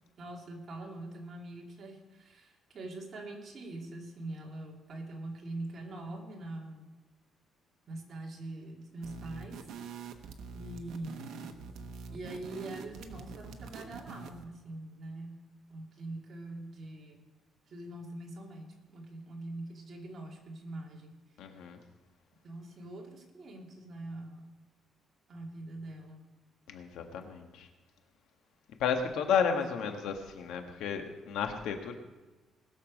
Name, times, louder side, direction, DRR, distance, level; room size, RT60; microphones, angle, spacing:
voice 1, 0.2-6.9 7.9-9.6 10.5-11.5 12.1-15.3 15.7-17.2 17.7-21.2 22.4-24.5 25.3-26.2 29.6-29.7, right 2 dB, 40° right, 0 dB, 2.7 m, -43 dB
sound 1, 9.0-14.5, right 5 dB, 75° right, 1.1 m, -45 dB
voice 2, 21.4-21.8 26.7-27.7 28.8-31.9, left 7 dB, 85° left, 5 dB, 1.5 m, -32 dB
20.0 x 7.0 x 5.3 m, 1.2 s
cardioid pair, 135°, 0 cm